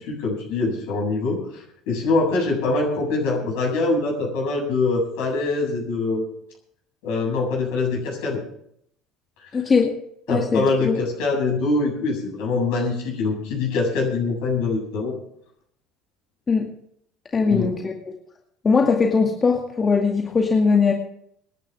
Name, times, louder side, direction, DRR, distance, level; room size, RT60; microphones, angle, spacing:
voice 1, 0.0-6.2 7.0-8.4 9.4-9.5 10.3-15.1 17.5-17.7, left 3 dB, 60° left, 0 dB, 7.7 m, -24 dB
voice 2, 9.5-10.0 10.3-11.0 16.5-16.7 17.3-17.9 18.6-20.9, left 5 dB, 25° left, 1 dB, 2.2 m, -20 dB
26.5 x 11.0 x 3.6 m, 0.70 s
figure-of-eight pair, 65°, 0 cm